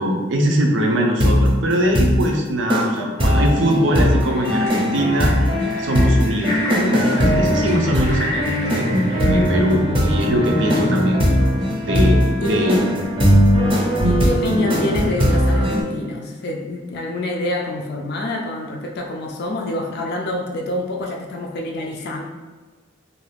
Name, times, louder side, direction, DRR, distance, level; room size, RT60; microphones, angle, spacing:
voice 1, 0.0-5.3 5.8-11.2 11.8-12.7, equal, 70° right, 1 dB, 0.5 m, -21 dB
sound 1, 1.2-1.5 1.9-2.2 2.7-2.8 3.2-15.8, equal, 30° right, 0.6 m, -19 dB
sound 2, 4.2-9.6, equal, 15° left, 0.8 m, -31 dB
voice 2, 14.0-22.2, left 1 dB, 55° left, 0 dB, 0.3 m, -26 dB
2.6 x 2.4 x 3.2 m, 1.3 s
head